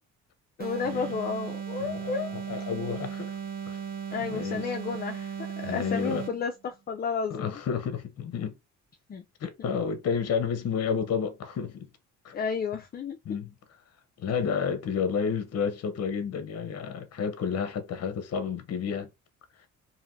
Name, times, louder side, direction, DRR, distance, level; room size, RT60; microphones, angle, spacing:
voice 1, 0.6-2.3 4.1-7.6 9.1-9.2 12.3-13.4, left 6 dB, 30° left, 0.4 m, -32 dB
sound 1, 0.6-6.5, right 8 dB, 30° right, 0.7 m, -36 dB
voice 2, 1.8-3.4 3.7-3.8 4.3-4.7 5.6-6.3 7.3-8.6 9.4-11.9 12.2-12.3 13.2-13.5 14.2-19.1, left 6 dB, 55° left, 0.7 m, -31 dB
3.2 x 2.6 x 2.6 m
cardioid pair, 90°, 30 cm